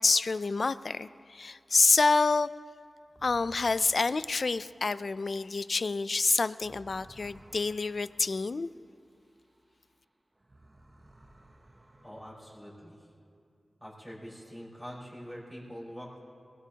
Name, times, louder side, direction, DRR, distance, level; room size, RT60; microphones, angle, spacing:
voice 1, 0.0-2.5 3.2-8.7, left 3 dB, 60° left, 15 dB, 0.3 m, -27 dB
sound 1, 3.1-10.0 10.3-13.0, right 1 dB, 30° right, 0.9 m, -58 dB
voice 2, 12.0-13.0 13.8-16.2, equal, 10° left, -7 dB, 4.4 m, -44 dB
23.0 x 18.5 x 2.9 m, 2.4 s
wide cardioid pair, 90°, 0 cm